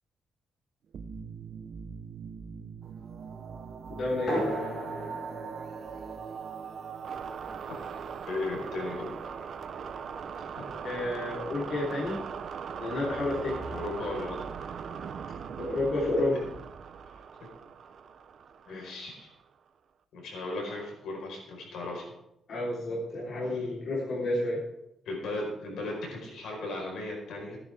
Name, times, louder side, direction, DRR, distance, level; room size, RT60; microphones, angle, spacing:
sound 1, 0.9-19.4, right 6 dB, 55° right, 0.8 m, -40 dB
voice 1, 3.9-4.5 10.8-12.2 12.8-13.7 15.6-16.3 18.7-18.9 22.5-24.6, left 2 dB, 60° left, -6 dB, 3.7 m, -30 dB
sound 2, 4.3-9.3, equal, 30° left, 4.8 m, -39 dB
voice 2, 8.3-9.2 13.7-14.4 18.7-19.3 20.1-22.1 23.5-23.7 25.0-27.6, left 2 dB, 80° left, -1 dB, 4.7 m, -36 dB
17.0 x 10.0 x 3.6 m, 0.82 s
cardioid pair, 140°, 0 cm